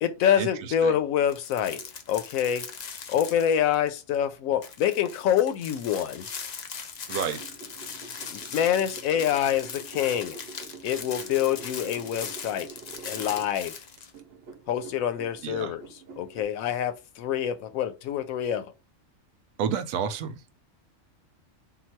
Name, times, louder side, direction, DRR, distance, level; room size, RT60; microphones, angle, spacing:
voice 1, 0.0-2.7 3.1-6.3 8.3-10.4 10.8-12.8 13.0-13.8 14.7-15.8 16.2-18.7, left 9 dB, 85° left, 1.0 m, -26 dB
sound 1, 1.3-3.9 4.1-4.2 4.6-14.1, left 6 dB, 65° left, 0.4 m, -40 dB
sound 2, 7.1-13.5 14.0-16.4, right 4 dB, 55° right, 0.9 m, -47 dB
voice 2, 7.1-7.4 15.4-15.7 19.6-20.4, right 7 dB, 80° right, 1.0 m, -29 dB
3.8 x 2.3 x 4.4 m
omnidirectional pair, 1.4 m